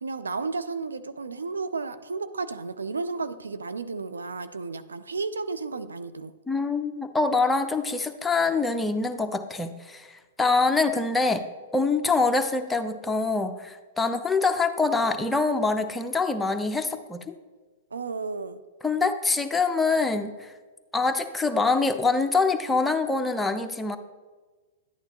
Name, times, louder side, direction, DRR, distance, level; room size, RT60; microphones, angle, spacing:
voice 1, 0.0-6.3 17.9-18.6, right 4 dB, 85° right, 11 dB, 0.5 m, -33 dB
voice 2, 6.5-11.5 11.7-17.4 18.8-20.5 20.9-24.0, left 3 dB, 10° left, 6 dB, 0.6 m, -25 dB
11.0 x 8.9 x 3.0 m, 1.4 s
hypercardioid pair, 110°, 0 cm